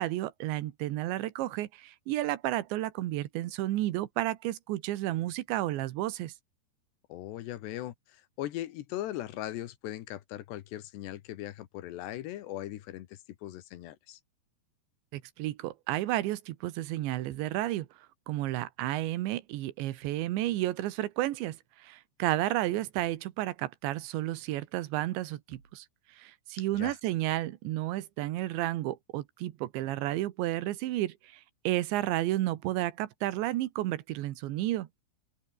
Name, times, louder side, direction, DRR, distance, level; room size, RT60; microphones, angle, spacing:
voice 1, 0.0-6.3 15.1-17.9 18.3-21.6 21.8-25.9 26.2-34.9, right 15 dB, 85° right, 3.5 m, -32 dB
voice 2, 7.1-14.2 26.7-27.0, left 14 dB, 75° left, 3.4 m, -39 dB
sound 1, 25.5-25.9, right 4 dB, 55° right, 8.9 m, -58 dB
omnidirectional pair, 5.1 m